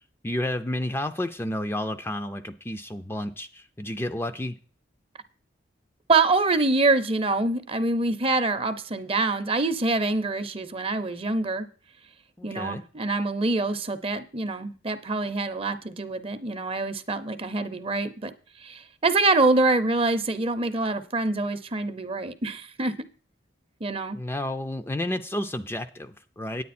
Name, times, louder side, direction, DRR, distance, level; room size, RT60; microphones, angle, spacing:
voice 1, 0.2-4.5 12.4-12.8 24.1-26.6, left 1 dB, 10° left, 8 dB, 0.4 m, -31 dB
voice 2, 6.1-11.7 12.4-18.3 18.6-22.9 23.8-24.2, right 3 dB, 30° right, 11 dB, 0.6 m, -25 dB
9.5 x 8.9 x 4.2 m, 0.41 s
head